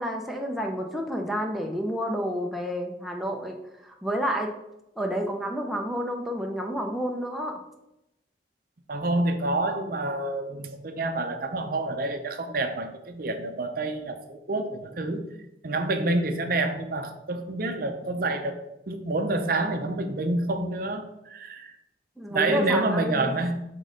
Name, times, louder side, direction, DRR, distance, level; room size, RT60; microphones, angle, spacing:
voice 1, 0.0-4.5 5.0-7.6 22.2-23.4, equal, ahead, 0 dB, 0.6 m, -30 dB
voice 2, 8.9-15.2 15.6-21.7 22.3-23.6, right 2 dB, 50° right, 6 dB, 0.6 m, -28 dB
6.1 x 3.7 x 5.1 m, 0.88 s
head